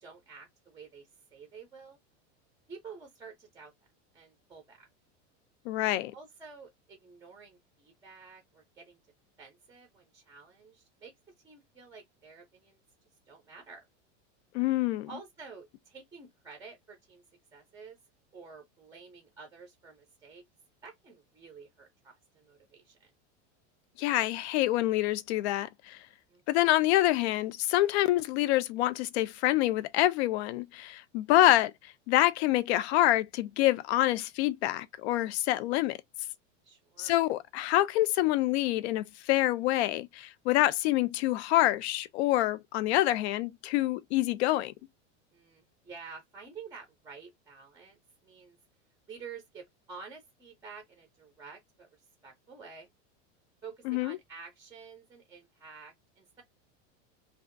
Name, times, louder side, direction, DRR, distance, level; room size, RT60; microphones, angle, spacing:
voice 1, 0.0-2.0 2.7-3.7 4.1-4.9 6.1-9.0 9.4-11.1 11.4-12.8 13.3-13.9 15.1-17.2 17.5-18.0 18.3-20.4 20.8-23.1 26.3-26.4 36.6-37.2 45.3-48.6 49.1-52.9 53.6-56.4, right 5 dB, 10° right, 0.5 m, -50 dB
voice 2, 5.7-6.1 14.5-15.1 24.0-26.0 26.5-36.0 37.0-44.7 53.9-54.2, left 15 dB, 60° left, 0.5 m, -26 dB
2.7 x 2.4 x 2.5 m
supercardioid pair, 145°, 36 cm